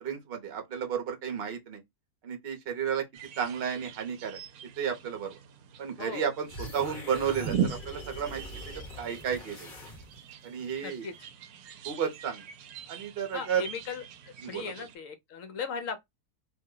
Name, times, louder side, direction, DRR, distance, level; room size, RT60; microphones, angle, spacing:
voice 1, 0.0-1.8 2.2-3.0 3.4-4.4 4.8-5.4 5.8-9.7 10.4-11.0 11.8-12.4 12.9-13.7 14.4-14.7, right 8 dB, 45° right, 0.9 m, -32 dB
sound 1, 3.1-15.0, right 8 dB, 75° right, 1.0 m, -40 dB
sound 2, 6.5-10.3, left 1 dB, 35° left, 1.0 m, -43 dB
voice 2, 10.8-11.3 13.3-14.0 14.5-16.0, left 6 dB, 60° left, 1.0 m, -37 dB
2.7 x 2.1 x 3.7 m
omnidirectional pair, 1.7 m